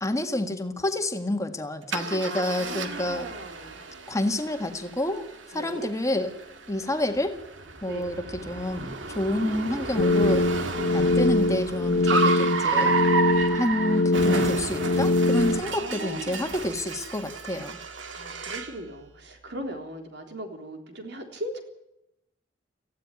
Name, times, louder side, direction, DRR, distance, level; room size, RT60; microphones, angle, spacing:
voice 1, 0.0-3.2 4.1-5.2 5.5-6.3 6.7-7.4 7.8-10.5 10.9-12.9 13.5-17.8, left 1 dB, 15° left, 6 dB, 1.8 m, -28 dB
Car, 1.9-18.8, right 4 dB, 90° right, 2.1 m, -32 dB
voice 2, 2.2-3.9 5.5-5.9 7.8-8.1 15.6-16.6 18.1-21.6, right 1 dB, 65° right, 4 dB, 3.7 m, -39 dB
sound 1, 10.0-15.6, left 2 dB, 60° left, 1.3 m, -23 dB
18.0 x 15.5 x 9.9 m, 0.85 s
head